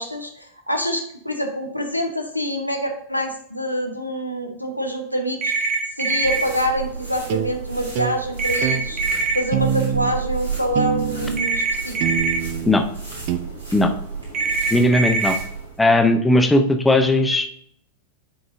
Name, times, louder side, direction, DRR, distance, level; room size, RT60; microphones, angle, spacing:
voice 1, 0.0-5.7 6.0-9.0 9.3-12.1, equal, 90° left, 3 dB, 0.9 m, -26 dB
sound 1, 5.4-6.4 8.4-9.4 11.4-12.4 14.3-15.3, right 4 dB, 30° right, 1.5 m, -23 dB
sound 2, 6.2-15.8, right 5 dB, 80° right, 2.4 m, -33 dB
sound 3, 7.3-7.5 8.0-8.2 8.6-8.8 9.5-10.2 10.8-11.5 12.0-12.8 13.3-13.4, right 9 dB, 45° right, 0.5 m, -24 dB
voice 2, 14.7-15.4 15.8-17.5, left 1 dB, 10° left, 5 dB, 0.8 m, -17 dB
9.9 x 4.0 x 2.6 m, 0.66 s
figure-of-eight pair, 90°, 0 cm